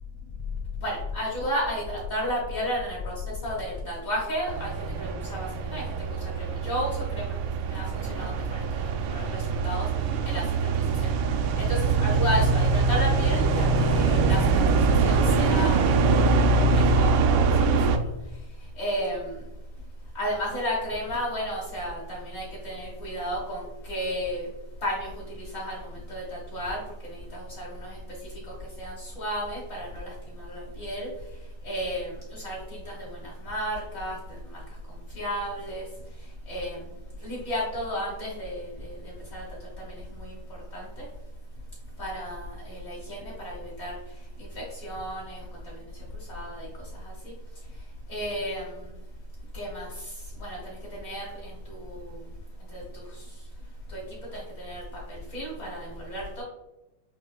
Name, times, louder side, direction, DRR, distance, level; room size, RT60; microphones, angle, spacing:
voice 1, 0.8-3.1 3.4-5.8 6.4-7.3 7.7-9.9 10.2-10.4 11.0-11.1 11.6-14.4 15.0-16.3 16.7-18.1 18.8-19.3 20.1-24.5 24.8-25.8 26.1-26.8 27.3-28.0 28.8-30.1 30.4-31.1 31.6-32.6 32.8-33.2 33.4-34.2 35.1-35.8 36.5-36.8 37.2-39.0 39.3-39.4 40.2-40.3 40.7-40.9 42.0-43.9 44.5-45.4 46.3-46.7 48.1-48.7 49.5-49.9 50.4-50.7 51.0-52.0 52.7-53.0 53.9-54.0 54.3-54.8 55.3-56.4, equal, 55° left, -5 dB, 0.9 m, -32 dB
sound 1, 4.5-18.0, right 4 dB, 80° right, 1.8 m, -23 dB
7.3 x 2.8 x 2.2 m, 0.96 s
omnidirectional pair, 3.8 m